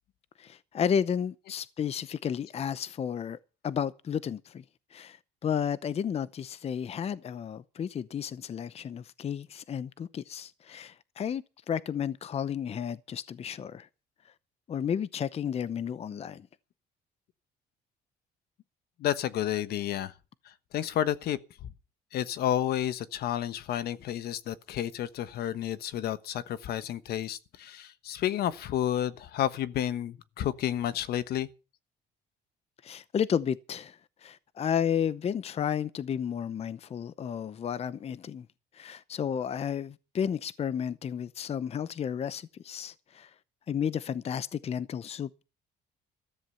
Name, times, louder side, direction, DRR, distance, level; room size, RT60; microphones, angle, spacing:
voice 1, 0.4-3.4 3.6-4.6 4.9-13.9 14.7-16.5 32.8-38.5 38.7-43.3 43.7-45.4, left 8 dB, 40° left, 0.7 m, -32 dB
voice 2, 19.0-20.1 20.7-21.7 22.1-31.5, left 11 dB, 70° left, 1.2 m, -31 dB
14.0 x 13.5 x 5.7 m
cardioid pair, 110°, 17 cm